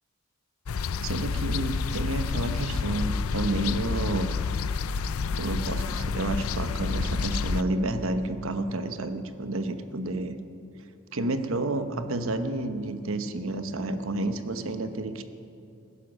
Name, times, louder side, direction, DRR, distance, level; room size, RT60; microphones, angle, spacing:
sound 1, 0.7-7.6, left 5 dB, 80° left, 0.5 m, -29 dB
voice 1, 1.0-4.3 5.4-10.4 11.1-15.2, right 2 dB, 70° right, 9 dB, 1.0 m, -30 dB
16.5 x 10.0 x 6.3 m, 2.8 s
head